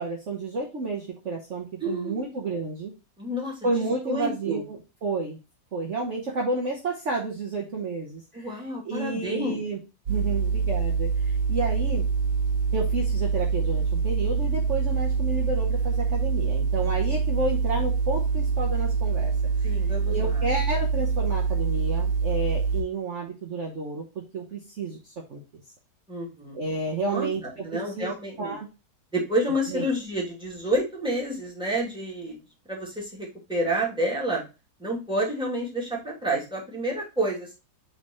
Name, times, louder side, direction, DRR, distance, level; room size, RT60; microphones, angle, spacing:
voice 1, 0.0-2.9 3.6-5.4 5.7-8.5 8.8-9.8 10.1-12.0 12.7-19.3 19.6-19.7 20.1-25.4 26.5-27.4 27.7-28.1 28.4-28.7 29.7-29.8, right 3 dB, 45° right, 0 dB, 1.4 m, -31 dB
voice 2, 1.8-2.3 3.2-4.6 8.3-9.6 16.8-17.0 19.6-20.4 26.1-26.6 27.1-28.5 29.1-32.4 32.7-34.4 34.8-37.5, right 1 dB, 5° right, -4 dB, 2.5 m, -29 dB
sound 1, 10.1-22.8, right 5 dB, 70° right, 2.5 m, -25 dB
8.8 x 4.1 x 3.1 m, 0.28 s
omnidirectional pair, 1.9 m